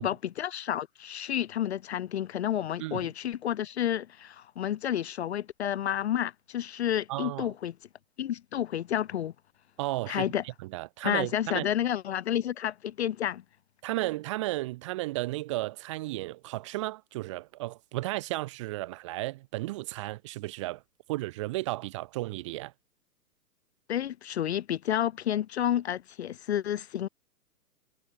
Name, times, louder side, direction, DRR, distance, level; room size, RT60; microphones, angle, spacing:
voice 1, 0.0-7.7 8.2-9.3 10.1-10.4 11.0-13.4 23.9-27.1, left 10 dB, 45° left, 0.8 m, -30 dB
voice 2, 7.1-7.5 9.8-11.7 13.8-20.8 21.1-22.7, right 18 dB, 20° right, 0.9 m, -34 dB
hypercardioid pair, 160°, 48 cm